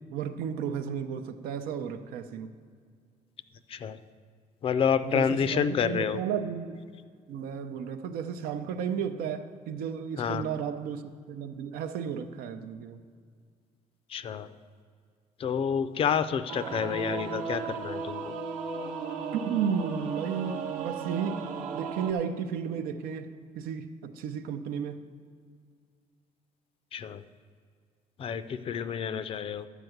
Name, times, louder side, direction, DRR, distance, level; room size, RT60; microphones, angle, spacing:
voice 1, 0.1-2.5 5.0-6.8 7.3-11.0 11.3-13.0 19.3-21.4 21.7-25.0, right 7 dB, 90° right, 8 dB, 0.7 m, -33 dB
voice 2, 3.7-4.0 4.6-6.2 10.2-10.4 14.1-14.5 15.4-18.3 26.9-27.2 28.2-29.7, left 7 dB, 40° left, 13 dB, 0.4 m, -29 dB
Singing / Musical instrument, 16.5-22.1, right 6 dB, 60° right, 0.9 m, -35 dB
11.0 x 4.8 x 7.9 m, 2.1 s
cardioid pair, 150°, 15 cm